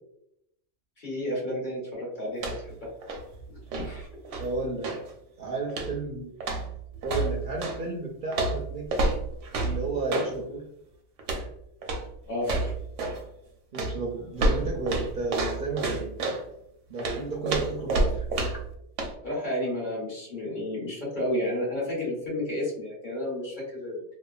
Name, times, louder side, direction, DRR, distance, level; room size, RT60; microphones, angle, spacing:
voice 1, 1.0-2.5 2.8-2.9 3.5-4.1 12.2-12.7 19.2-24.0, left 1 dB, 45° left, -6 dB, 1.2 m, -31 dB
sound 1, 2.3-2.8 3.0-5.1 5.7-6.1 6.4-7.8 8.3-10.3 11.2-11.5 11.8-12.1 12.4-13.2 13.7-16.4 17.0-18.7 19.0-19.1, right 2 dB, 85° right, 0.9 m, -29 dB
voice 2, 4.4-4.9 5.4-6.3 7.0-9.1 9.6-10.6 13.7-16.2 16.9-18.3, right 3 dB, 55° right, -3 dB, 0.6 m, -32 dB
2.9 x 2.2 x 2.3 m, 0.77 s
omnidirectional pair, 1.2 m